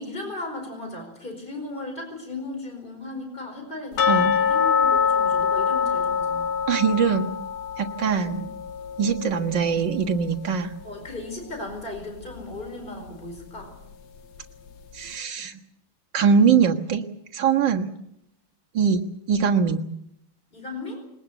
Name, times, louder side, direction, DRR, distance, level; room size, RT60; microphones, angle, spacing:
voice 1, 0.0-6.6 8.2-8.5 10.8-13.7 20.5-21.0, left 2 dB, 25° left, 4 dB, 5.1 m, -36 dB
sound 1, 4.0-10.8 11.1-11.2 11.7-11.8 12.4-12.5, left 7 dB, 75° left, 2.0 m, -25 dB
voice 2, 6.7-7.3 7.8-8.4 9.0-10.7 14.9-15.6 16.1-17.1 17.3-17.9 18.7-19.8, right 6 dB, 60° right, 3 dB, 2.2 m, -22 dB
21.5 x 19.5 x 8.2 m, 0.77 s
omnidirectional pair, 2.2 m